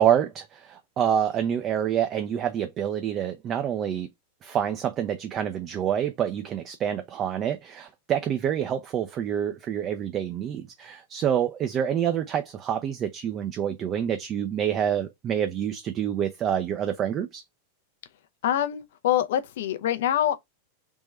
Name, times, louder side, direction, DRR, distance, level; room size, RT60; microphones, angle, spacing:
voice 1, 0.0-4.1 4.4-17.4, right 9 dB, 30° right, 0.5 m, -27 dB
voice 2, 18.4-20.4, left 11 dB, 55° left, 0.6 m, -25 dB
3.6 x 3.0 x 3.1 m
figure-of-eight pair, 90°, 0 cm